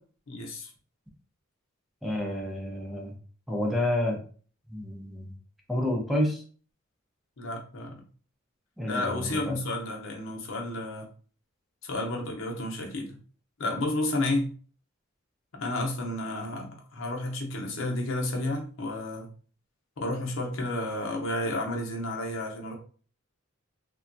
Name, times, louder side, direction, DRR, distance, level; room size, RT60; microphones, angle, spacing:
voice 1, 0.3-0.7 7.4-8.0 8.9-11.1 11.8-13.2 13.6-14.5 15.5-19.3 20.0-22.7, left 1 dB, 70° left, 0.7 m, -31 dB
voice 2, 2.0-3.1 3.5-4.2 4.7-5.3 5.7-6.4 8.8-9.6, left 1 dB, ahead, 0.5 m, -29 dB
3.3 x 2.2 x 2.6 m
head